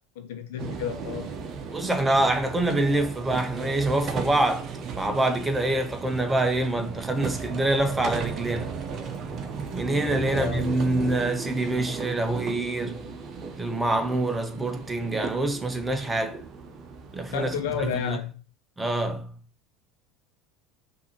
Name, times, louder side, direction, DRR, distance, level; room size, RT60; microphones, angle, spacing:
voice 1, 0.2-1.4 10.3-10.7 17.3-18.4, left 8 dB, 70° left, 0.9 m, -31 dB
sound 1, 0.6-18.1, right 5 dB, 45° right, 0.9 m, -36 dB
voice 2, 1.7-8.8 9.7-13.0 13.5-16.4 17.1-18.2 18.8-19.3, right 2 dB, 15° right, 0.9 m, -26 dB
6.0 x 2.8 x 2.9 m
hypercardioid pair, 75°, 0 cm